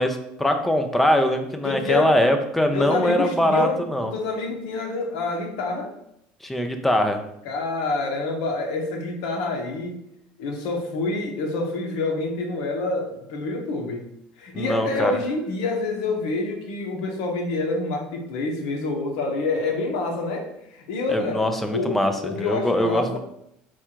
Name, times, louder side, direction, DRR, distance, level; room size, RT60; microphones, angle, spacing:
voice 1, 0.0-4.1 6.4-7.2 14.5-15.1 21.1-22.1 22.4-23.2, left 1 dB, 5° left, 6 dB, 0.4 m, -22 dB
voice 2, 1.6-2.2 2.7-5.9 7.4-10.0 10.4-14.1 14.4-21.4 21.7-23.2, left 3 dB, 85° left, 3 dB, 0.9 m, -27 dB
4.4 x 2.4 x 4.4 m, 0.78 s
cardioid pair, 150°, 4 cm